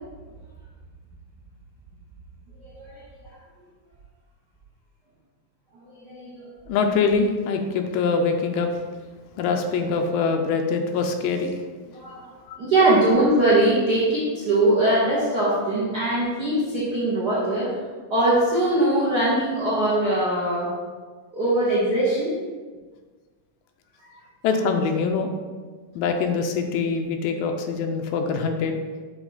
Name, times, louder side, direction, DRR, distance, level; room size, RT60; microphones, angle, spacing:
voice 1, 2.6-3.0 5.7-6.5 11.9-12.3 12.6-17.7 18.1-20.7 21.3-22.3 24.0-24.1, right 1 dB, 85° right, -8 dB, 0.9 m, -21 dB
voice 2, 6.7-8.7 9.4-11.5 12.5-12.6 24.4-25.3 26.0-28.8, left 5 dB, 90° left, 4 dB, 2.3 m, -24 dB
8.0 x 3.6 x 4.0 m, 1.4 s
omnidirectional pair, 3.9 m